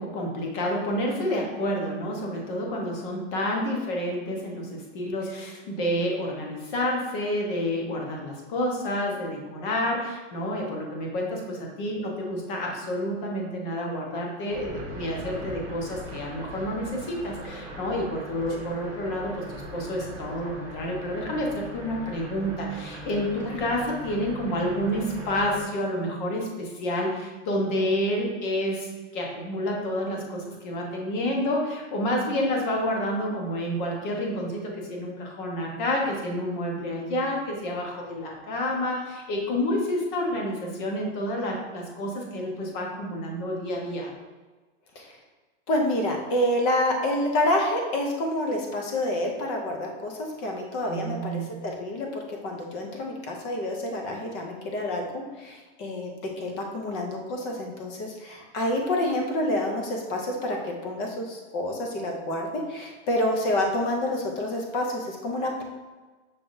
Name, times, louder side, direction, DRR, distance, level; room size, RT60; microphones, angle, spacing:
voice 1, 0.0-44.1 50.9-51.5, equal, 40° left, 0 dB, 1.1 m, -29 dB
sound 1, 14.5-25.6, right 1 dB, 15° right, 1.4 m, -40 dB
voice 2, 45.7-56.1 56.4-65.6, left 1 dB, 25° left, 1 dB, 0.5 m, -28 dB
5.7 x 3.4 x 2.7 m, 1.3 s
supercardioid pair, 160°, 36 cm